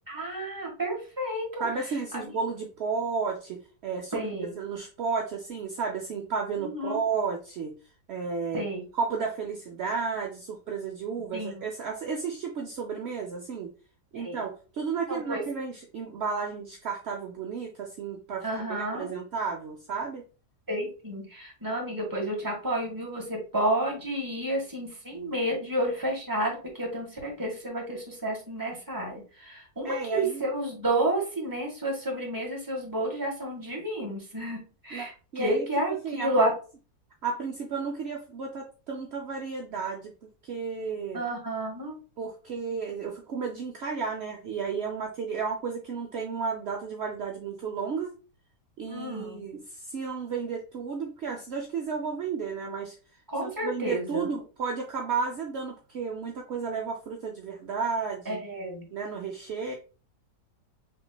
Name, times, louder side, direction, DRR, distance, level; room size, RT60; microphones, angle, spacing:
voice 1, 0.1-1.7 2.1-2.3 4.1-4.5 6.6-7.0 8.5-8.8 11.3-11.5 14.1-14.4 15.1-15.4 18.4-19.2 20.7-34.6 34.8-36.5 41.1-42.0 48.9-49.4 53.3-54.3 58.2-58.9, right 1 dB, 10° right, -2 dB, 1.5 m, -30 dB
voice 2, 1.6-4.3 4.6-7.7 8.1-8.6 8.9-13.7 14.1-20.2 29.8-30.4 34.9-35.7 36.0-36.3 37.2-40.1 40.4-41.2 42.2-48.1 48.8-52.9 53.4-58.4 58.9-59.7, right 5 dB, 60° right, 1 dB, 0.7 m, -33 dB
5.8 x 3.1 x 2.3 m, 0.35 s
omnidirectional pair, 1.8 m